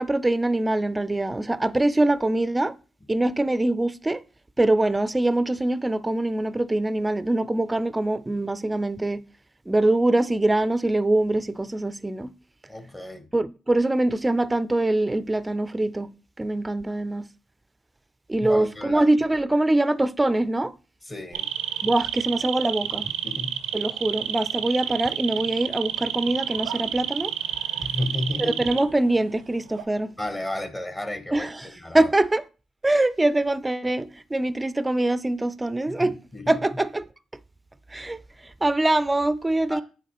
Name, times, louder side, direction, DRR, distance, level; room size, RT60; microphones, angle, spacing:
voice 1, 0.0-2.7 3.1-4.2 4.6-9.2 9.7-12.3 13.3-16.1 16.4-17.3 18.3-20.7 21.8-23.1 23.7-27.3 28.4-30.1 31.3-31.7 31.9-32.4 32.8-36.2 36.5-37.0 37.9-38.2 38.6-39.8, right 2 dB, 15° right, 0.4 m, -23 dB
voice 2, 12.7-13.3 18.4-19.1 21.0-21.5 21.8-21.9 23.2-23.6 27.8-28.7 30.2-32.1 35.9-36.6 39.7-39.8, left 1 dB, 20° left, 0.9 m, -32 dB
sound 1, 21.3-29.2 29.5-29.8, right 11 dB, 90° right, 0.4 m, -30 dB
8.1 x 4.0 x 2.9 m
supercardioid pair, 70°, 0 cm